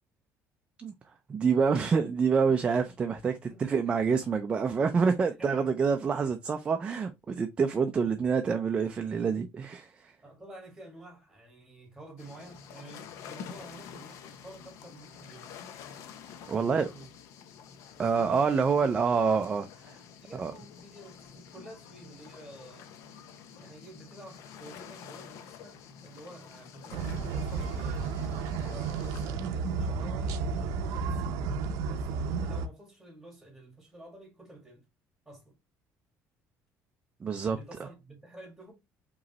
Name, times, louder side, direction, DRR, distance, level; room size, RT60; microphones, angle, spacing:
voice 1, 1.3-10.1 16.5-16.9 18.0-20.0 20.3-20.5 37.2-37.6, right 5 dB, 20° right, 0.4 m, -27 dB
voice 2, 5.4-5.8 6.2-6.3 10.2-15.5 16.5-17.1 17.9-19.0 20.2-22.9 23.6-28.2 28.6-31.4 31.9-32.1 32.4-34.8 35.2-35.6 37.5-38.7, right 1 dB, 5° right, 1.7 m, -50 dB
sound 1, 12.2-29.3, left 7 dB, 60° left, 0.6 m, -48 dB
sound 2, 26.9-32.7, right 5 dB, 75° right, 0.6 m, -32 dB
5.0 x 3.1 x 2.9 m
cardioid pair, 170°, 6 cm